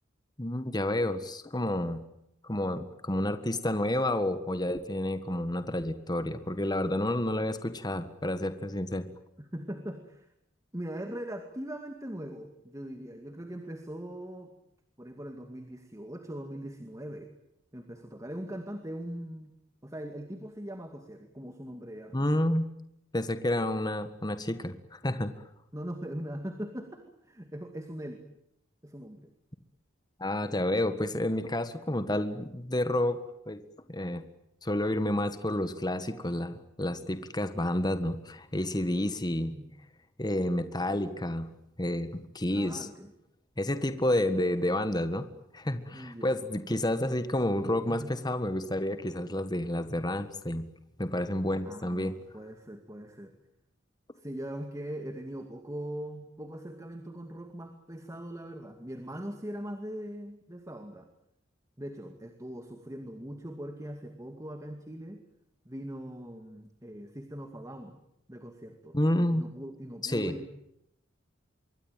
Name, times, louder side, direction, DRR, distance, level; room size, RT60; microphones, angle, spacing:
voice 1, 0.4-2.0 2.4-9.1 22.1-22.7 23.1-25.3 30.2-33.2 33.5-33.6 33.9-34.2 34.6-39.5 40.2-41.5 41.8-42.1 42.3-42.9 43.6-45.3 45.5-50.6 51.0-52.1 68.9-69.4 70.0-70.3, left 1 dB, 20° left, 10 dB, 1.6 m, -30 dB
voice 2, 9.5-10.3 10.7-14.5 15.0-17.3 17.7-19.5 19.8-22.5 25.7-28.2 28.8-29.3 39.3-39.7 42.5-43.1 45.9-46.3 46.7-46.8 47.9-48.1 51.6-53.3 54.2-61.1 61.8-65.2 65.7-67.9 68.3-69.0 69.3-70.4, right 1 dB, 15° right, 6 dB, 2.3 m, -41 dB
26.5 x 23.5 x 9.2 m, 0.79 s
head